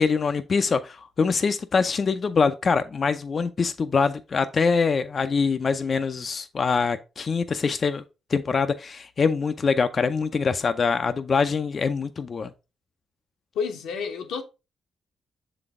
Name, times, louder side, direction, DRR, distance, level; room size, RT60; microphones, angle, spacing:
voice 1, 0.0-8.0 8.3-12.5, left 5 dB, 45° left, 0.5 m, -24 dB
voice 2, 13.5-14.4, left 6 dB, 85° left, 1.0 m, -29 dB
6.8 x 3.9 x 3.6 m
cardioid pair, 70°, 0 cm